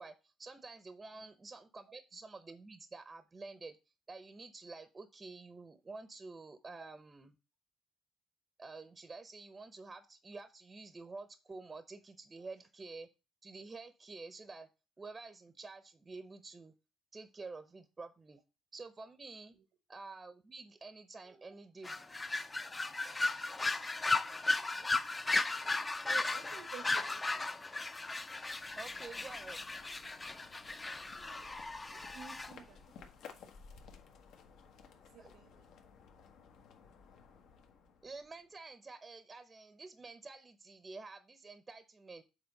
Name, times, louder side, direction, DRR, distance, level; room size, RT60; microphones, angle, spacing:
voice 1, 0.0-3.8 4.1-7.4 8.6-13.1 13.4-14.7 15.0-16.7 17.1-18.4 18.7-19.6 19.9-22.0 28.8-29.7 35.2-35.7 38.0-42.2, right 3 dB, 20° right, 11 dB, 0.7 m, -49 dB
sound 1, 21.8-32.5, left 3 dB, 15° left, 0.5 m, -36 dB
voice 2, 26.1-27.6 30.0-30.1 30.7-31.6 31.9-33.9 35.1-35.7, right 8 dB, 85° right, 9 dB, 1.0 m, -55 dB
sound 2, 27.9-38.6, left 6 dB, 70° left, 1.3 m, -58 dB
7.1 x 4.2 x 5.2 m, 0.29 s
cardioid pair, 140°, 0 cm